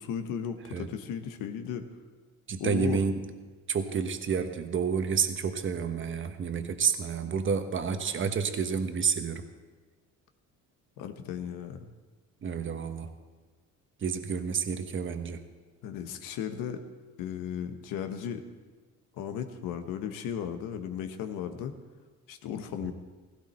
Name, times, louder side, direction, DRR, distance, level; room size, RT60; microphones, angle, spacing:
voice 1, 0.0-1.9 2.6-3.0 11.0-11.9 15.8-16.8 17.2-18.4 19.1-21.7 22.3-22.9, left 8 dB, 85° left, 7 dB, 1.3 m, -35 dB
voice 2, 2.5-3.2 3.7-9.4 12.4-13.1 14.0-15.4 22.8-22.9, right 6 dB, 40° right, 7 dB, 1.3 m, -29 dB
16.0 x 16.0 x 4.4 m, 1.4 s
cardioid pair, 100°, 32 cm